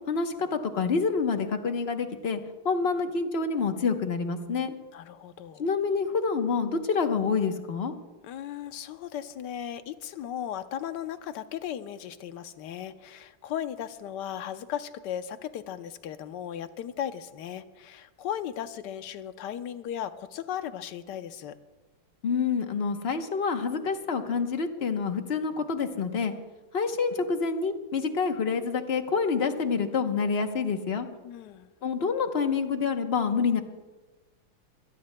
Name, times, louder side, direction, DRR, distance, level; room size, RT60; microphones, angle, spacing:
voice 1, 0.1-2.4 2.6-4.7 5.6-7.9 22.2-26.3 26.7-31.1 31.8-33.6, left 5 dB, 45° left, 6 dB, 0.9 m, -27 dB
voice 2, 4.9-5.7 8.2-21.5 31.2-31.7, left 10 dB, 70° left, 10 dB, 1.2 m, -36 dB
25.0 x 18.0 x 2.2 m, 1.2 s
omnidirectional pair, 2.2 m